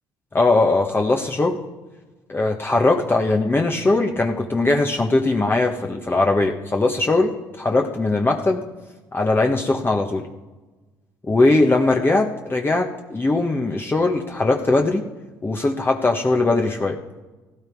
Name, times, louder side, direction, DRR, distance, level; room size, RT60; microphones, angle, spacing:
voice 1, 0.3-1.6 2.3-8.6 9.1-10.3 11.3-15.0 15.4-17.0, left 2 dB, 25° left, 2 dB, 1.3 m, -20 dB
16.0 x 10.5 x 4.7 m, 1.2 s
hypercardioid pair, 55°, 9 cm